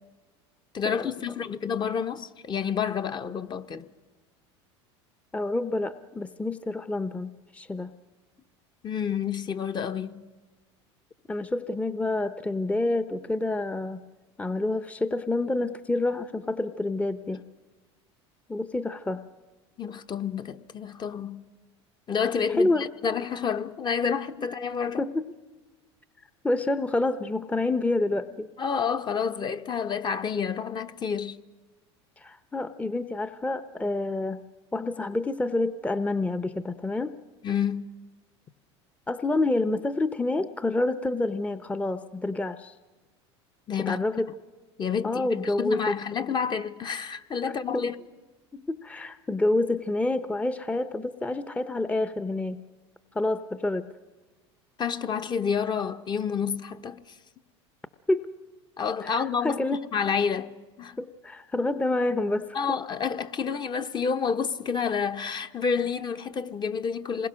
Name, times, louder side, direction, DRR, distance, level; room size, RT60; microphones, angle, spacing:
voice 1, 0.7-3.9 8.8-10.2 19.8-21.4 22.1-25.0 28.6-31.4 37.4-37.8 43.7-44.0 44.8-47.9 54.8-57.0 58.8-60.5 60.8-61.0 62.5-67.3, left 6 dB, 30° left, 1.1 m, -29 dB
voice 2, 5.3-7.9 11.3-14.0 14.4-17.4 18.5-19.2 22.6-22.9 25.0-25.3 26.4-28.5 32.2-34.4 34.7-37.2 39.1-42.7 43.9-44.3 45.0-46.0 47.7-47.8 48.5-52.6 53.1-53.9 58.1-58.3 59.0-59.8 61.0-62.8, left 2 dB, 10° left, 0.8 m, -28 dB
27.0 x 21.0 x 6.3 m
hypercardioid pair, 90°, 15 cm